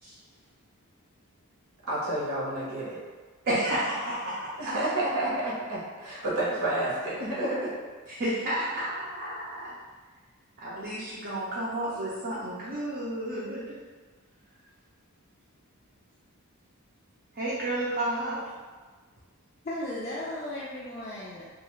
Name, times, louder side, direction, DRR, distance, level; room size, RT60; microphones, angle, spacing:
voice 1, 1.9-3.0 4.6-7.7, right 1 dB, 90° right, -7 dB, 1.0 m, -30 dB
voice 2, 3.4-4.7 8.1-9.7 10.6-13.8 17.4-18.4, right 1 dB, 45° right, -8 dB, 0.5 m, -31 dB
voice 3, 19.6-21.4, left 1 dB, 30° left, -8 dB, 0.3 m, -35 dB
2.4 x 2.4 x 3.0 m, 1.4 s
head